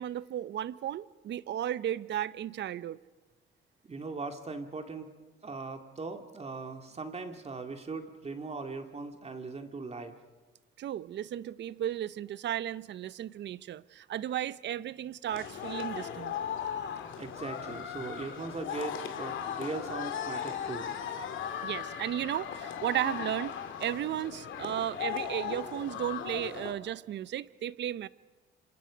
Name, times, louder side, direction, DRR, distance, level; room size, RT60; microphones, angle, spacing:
voice 1, 0.0-3.0 10.8-16.3 21.6-23.5 23.8-28.1, right 11 dB, 65° right, 0.7 m, -34 dB
voice 2, 3.8-5.1 5.4-10.2 17.2-20.9, right 4 dB, 30° right, 2.4 m, -39 dB
sound 1, 15.3-26.7, left 8 dB, 75° left, 2.5 m, -37 dB
27.5 x 26.5 x 5.2 m
cardioid pair, 90°, 20 cm